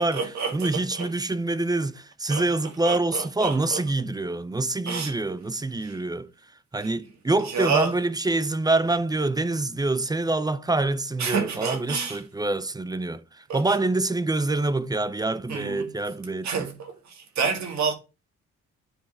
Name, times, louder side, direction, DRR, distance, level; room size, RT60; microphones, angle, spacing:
voice 1, 0.0-1.1 2.3-2.4 2.8-3.8 4.9-5.1 5.8-5.9 7.5-7.9 11.2-12.2 13.5-13.6 15.5-15.9 16.4-17.9, right 5 dB, 65° right, 1.9 m, -29 dB
voice 2, 0.5-6.3 6.7-16.7, right 2 dB, 15° right, 0.6 m, -26 dB
9.9 x 3.7 x 4.2 m
cardioid pair, 90°, 30 cm